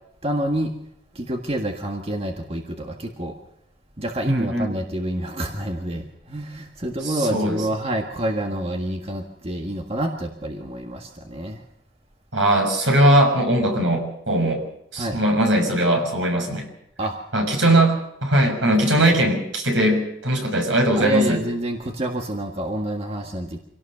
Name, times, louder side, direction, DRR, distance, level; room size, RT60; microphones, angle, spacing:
voice 1, 0.2-0.7 1.1-3.3 4.0-11.6 15.0-15.2 17.0-17.2 21.0-23.6, right 1 dB, 30° right, 3 dB, 1.7 m, -28 dB
voice 2, 4.3-4.7 7.0-7.6 12.3-14.6 14.9-16.7 17.3-21.4, right 1 dB, 75° right, 3 dB, 6.5 m, -20 dB
26.0 x 17.5 x 6.7 m, 0.79 s
head